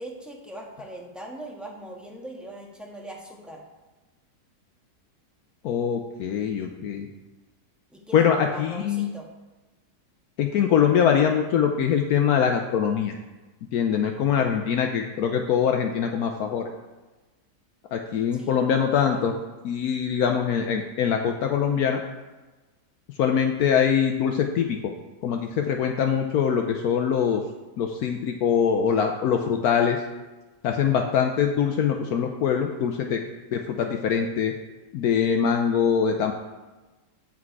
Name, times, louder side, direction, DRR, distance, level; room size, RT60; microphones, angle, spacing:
voice 1, 0.0-3.7 7.9-9.3 18.3-18.6 19.0-19.3, right 1 dB, ahead, -1 dB, 1.2 m, -40 dB
voice 2, 5.6-7.1 8.1-9.1 10.4-13.1 13.7-16.7 17.9-19.3 19.6-22.0 23.2-24.9 25.2-27.4 27.8-30.0 30.6-33.2 33.5-34.5 34.9-36.3, left 7 dB, 70° left, 3 dB, 1.1 m, -23 dB
8.6 x 6.1 x 4.7 m, 1.2 s
omnidirectional pair, 1.7 m